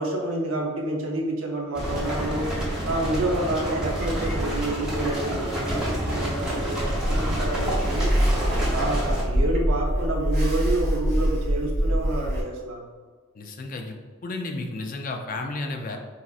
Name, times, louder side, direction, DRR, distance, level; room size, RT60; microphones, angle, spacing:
voice 1, 0.0-2.5 2.8-8.1 8.7-12.8, right 1 dB, 85° right, 0 dB, 0.7 m, -28 dB
sound 1, 1.7-9.2, equal, 5° right, 0.7 m, -28 dB
sound 2, 6.8-12.4, equal, 50° right, 0.8 m, -24 dB
voice 2, 13.4-14.0 14.2-16.0, left 2 dB, 40° left, 3 dB, 0.4 m, -32 dB
4.1 x 2.5 x 2.4 m, 1.5 s
head